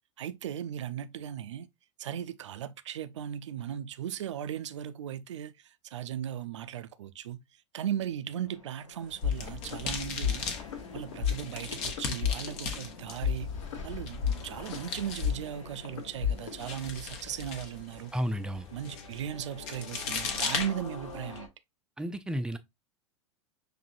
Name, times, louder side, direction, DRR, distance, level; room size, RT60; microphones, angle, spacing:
voice 1, 0.2-1.7 2.0-7.4 7.7-10.4 10.9-13.5 13.8-18.1 18.7-21.5, right 10 dB, 70° right, 0.4 m, -37 dB
sound 1, 8.3-21.5, left 4 dB, 90° left, 0.9 m, -49 dB
sound 2, 9.0-21.4, left 5 dB, 45° left, 0.9 m, -39 dB
sound 3, 9.2-16.8, left 7 dB, 65° left, 1.3 m, -34 dB
voice 2, 18.1-18.7 22.0-22.6, equal, 5° right, 0.5 m, -32 dB
5.9 x 2.7 x 2.5 m
figure-of-eight pair, 85°, 16 cm